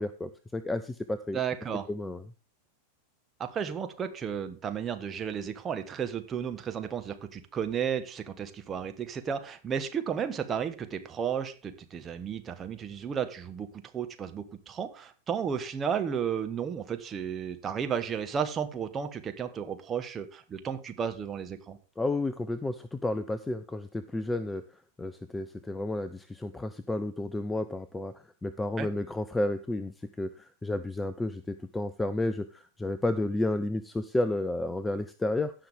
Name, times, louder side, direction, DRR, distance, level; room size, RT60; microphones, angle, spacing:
voice 1, 0.0-1.4 1.9-2.2 22.0-24.6 25.0-28.1 28.4-29.9 30.2-35.5, left 2 dB, 10° left, 13 dB, 0.5 m, -31 dB
voice 2, 1.3-1.9 3.4-21.8 28.8-28.9, right 7 dB, 25° right, 8 dB, 1.3 m, -33 dB
17.0 x 5.9 x 3.6 m, 0.35 s
figure-of-eight pair, 90°, 0 cm